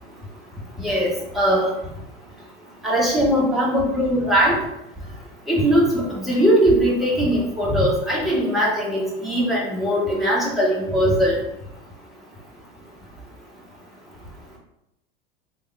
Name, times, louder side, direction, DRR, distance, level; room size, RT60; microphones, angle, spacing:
voice 1, 0.8-1.7 2.8-4.6 5.5-11.4, equal, ahead, -7 dB, 1.1 m, -20 dB
3.4 x 2.4 x 3.1 m, 0.87 s
figure-of-eight pair, 85°, 29 cm